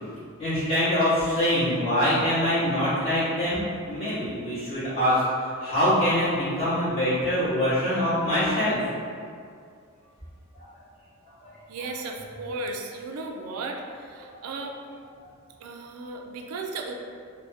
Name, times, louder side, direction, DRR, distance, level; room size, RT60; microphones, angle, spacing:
voice 1, 0.4-8.8 11.4-11.5 14.2-14.3, equal, 30° left, -14 dB, 1.5 m, -24 dB
voice 2, 11.7-14.8 15.6-16.9, right 3 dB, 80° right, 3 dB, 0.4 m, -35 dB
3.3 x 2.2 x 2.7 m, 2.2 s
head